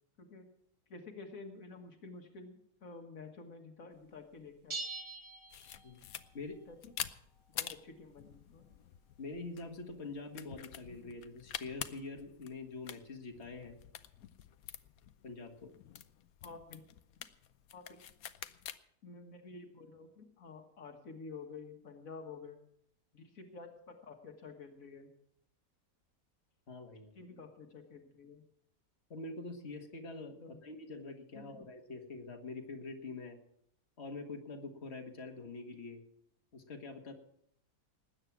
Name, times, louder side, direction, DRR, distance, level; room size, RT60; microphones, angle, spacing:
voice 1, 0.2-0.5 0.9-4.8 6.7-6.9 7.5-8.6 16.4-16.8 17.7-18.0 19.0-22.6 23.1-25.1 27.1-28.4 30.4-30.6 31.3-31.6, left 4 dB, 70° left, 4 dB, 2.0 m, -50 dB
sound 1, 4.7-6.3, right 3 dB, 25° right, 0.9 m, -43 dB
sound 2, 5.5-18.8, left 10 dB, 90° left, 1.2 m, -48 dB
voice 2, 9.2-13.8 15.2-15.7 26.7-27.1 29.1-33.4 34.0-36.0 36.5-37.1, left 3 dB, 50° left, 3 dB, 2.0 m, -45 dB
19.5 x 9.0 x 6.0 m, 0.72 s
omnidirectional pair, 1.5 m